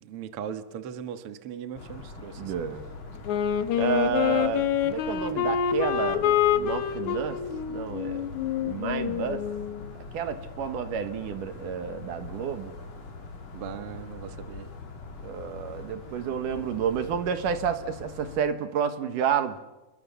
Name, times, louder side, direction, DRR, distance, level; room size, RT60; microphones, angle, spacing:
voice 1, 0.0-2.5 13.5-14.7, right 8 dB, 55° right, 9 dB, 2.0 m, -38 dB
sound 1, 1.8-18.4, left 3 dB, 50° left, 3.9 m, -43 dB
voice 2, 2.4-2.8 3.8-7.4 7.7-9.4 10.1-12.7 15.2-19.6, right 7 dB, 80° right, 9 dB, 3.0 m, -30 dB
Wind instrument woodwind instrument, 3.3-9.8, left 9 dB, 70° left, 2.5 m, -27 dB
28.5 x 23.0 x 6.9 m, 1.1 s
omnidirectional pair, 3.7 m